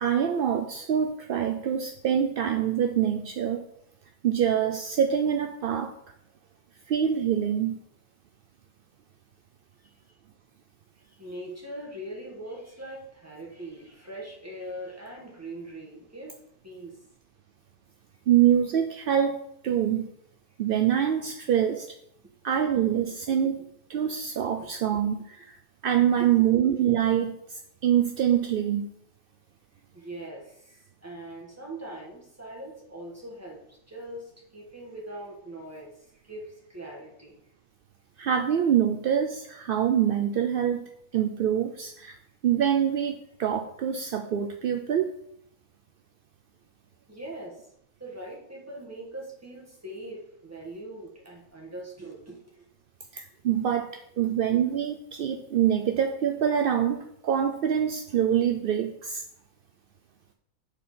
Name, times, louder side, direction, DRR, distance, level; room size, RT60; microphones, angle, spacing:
voice 1, 0.0-3.6 4.2-5.9 6.9-7.8 18.3-19.4 19.6-20.1 20.6-21.9 22.4-23.6 23.9-25.6 25.8-28.9 38.2-40.8 41.1-42.1 42.4-45.1 53.1-59.2, right 9 dB, 65° right, 5 dB, 0.5 m, -25 dB
voice 2, 11.0-16.3 16.6-17.0 23.6-23.7 24.6-24.7 26.2-26.7 29.9-37.4 47.1-47.6 48.0-52.7, right 1 dB, 10° right, -2 dB, 1.6 m, -41 dB
7.2 x 4.2 x 5.6 m, 0.74 s
omnidirectional pair, 1.4 m